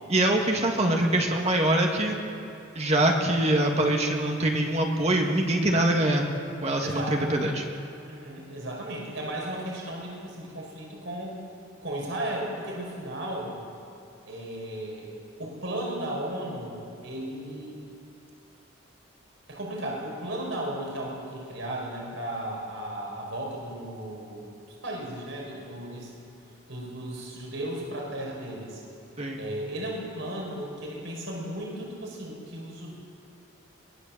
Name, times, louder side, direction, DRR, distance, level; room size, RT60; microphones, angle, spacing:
voice 1, 0.1-2.2 2.8-6.3 6.6-7.7 29.2-29.4, right 1 dB, 30° right, 1 dB, 1.8 m, -24 dB
voice 2, 6.8-7.3 8.0-11.4 11.8-13.7 14.3-15.1 15.4-17.8 19.5-26.1 26.7-28.8 29.4-33.0, right 1 dB, 65° right, -1 dB, 5.2 m, -35 dB
23.0 x 18.0 x 7.3 m, 2.9 s
head